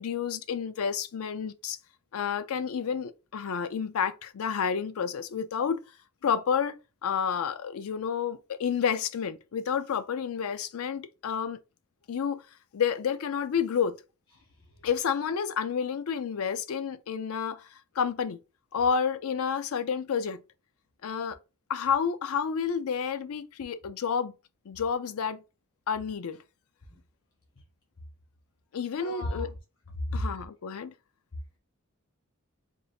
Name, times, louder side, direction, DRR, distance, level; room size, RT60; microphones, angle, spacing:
voice 1, 0.0-1.8 2.1-5.8 6.2-6.8 7.0-11.6 12.1-12.4 12.7-14.0 14.8-18.4 18.7-20.4 21.0-21.4 21.7-24.3 24.7-25.4 25.9-26.4 28.7-29.5 30.1-30.9, left 7 dB, 85° left, 0.4 m, -30 dB
voice 2, 14.3-14.7 26.9-27.0 29.0-29.5 30.1-30.2, left 1 dB, 65° left, 0.9 m, -35 dB
4.0 x 2.3 x 3.4 m
head